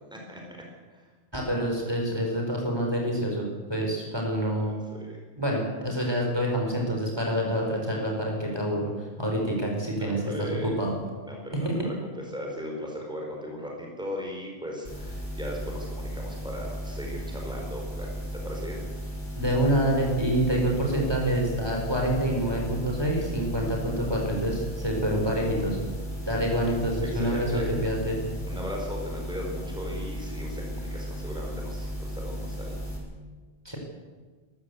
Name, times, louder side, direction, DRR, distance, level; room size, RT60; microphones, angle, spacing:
voice 1, 0.1-0.4 0.9-1.1 4.9-5.2 9.9-10.8 11.2-18.8 27.1-27.7 28.5-32.7, equal, 5° right, -1 dB, 4.5 m, -38 dB
voice 2, 1.3-3.4 3.7-4.7 5.4-10.9 11.6-11.7 19.4-25.8 26.3-28.2 33.6-33.8, right 1 dB, 20° right, -1 dB, 4.7 m, -27 dB
sound 1, 14.8-33.0, equal, 45° left, 6.8 m, -35 dB
22.5 x 14.5 x 8.3 m, 1.4 s
omnidirectional pair, 1.1 m